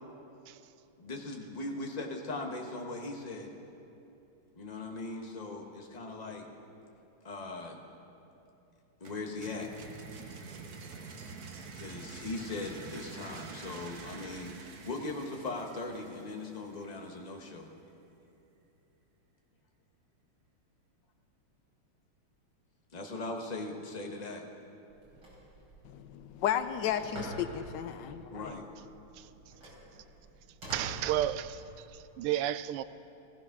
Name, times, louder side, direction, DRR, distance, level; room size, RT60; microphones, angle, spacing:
voice 1, 1.0-3.5 4.6-6.5 7.2-7.8 9.0-9.7 11.8-17.7 22.9-24.4 28.3-28.6, left 2 dB, 25° left, 1 dB, 1.2 m, -39 dB
sound 1, 9.0-16.8, right 4 dB, 50° right, 1.5 m, -47 dB
Telephone, 24.9-31.9, right 1 dB, 70° right, 6.0 m, -47 dB
voice 2, 25.8-28.5, left 9 dB, 70° left, 10 dB, 1.1 m, -33 dB
voice 3, 30.7-32.8, right 12 dB, 90° right, 14 dB, 1.5 m, -32 dB
16.0 x 15.0 x 6.0 m, 2.8 s
omnidirectional pair, 2.4 m